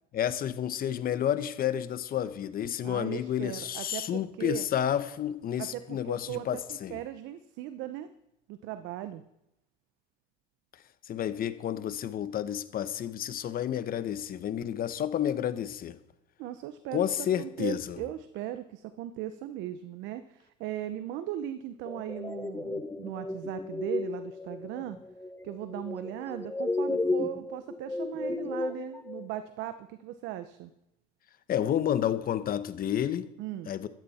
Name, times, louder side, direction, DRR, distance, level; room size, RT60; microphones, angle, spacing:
voice 1, 0.1-7.0 11.1-16.0 16.9-18.0 31.5-33.3 33.7-33.9, left 10 dB, 50° left, 1.2 m, -30 dB
voice 2, 2.8-4.7 5.6-8.1 8.5-9.2 16.4-25.0 25.4-30.7 33.4-33.7, right 13 dB, 75° right, 0.9 m, -38 dB
sound 1, 21.8-29.3, left 2 dB, 10° left, 1.3 m, -34 dB
16.0 x 13.0 x 4.4 m
supercardioid pair, 90°, 20 cm